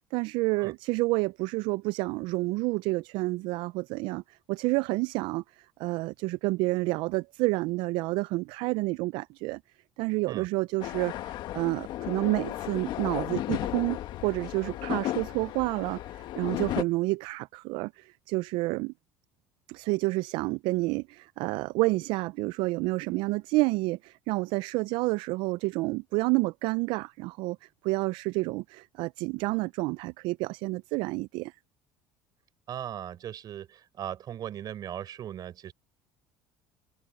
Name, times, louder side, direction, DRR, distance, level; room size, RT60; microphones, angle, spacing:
voice 1, 0.1-5.4 5.8-9.6 10.0-18.9 19.7-27.6 27.8-31.5, right 23 dB, 70° right, 0.4 m, -29 dB
sound 1, 10.8-16.8, left 14 dB, 60° left, 1.5 m, -34 dB
voice 2, 32.7-35.7, right 10 dB, 50° right, 6.2 m, -38 dB
supercardioid pair, 95°, 9 cm